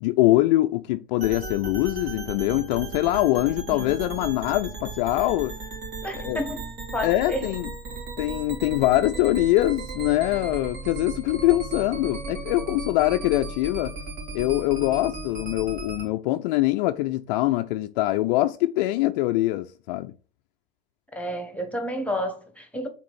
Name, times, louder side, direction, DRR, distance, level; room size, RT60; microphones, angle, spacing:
voice 1, 0.0-5.5 6.1-6.4 7.0-7.7 8.2-13.9 14.3-20.1, left 16 dB, 50° left, 0.4 m, -23 dB
sound 1, 1.2-16.1, right 3 dB, 60° right, 2.4 m, -36 dB
voice 2, 6.0-6.6 6.9-7.5 21.1-22.9, equal, 5° left, 1.3 m, -30 dB
4.9 x 3.6 x 5.5 m
figure-of-eight pair, 75°, 29 cm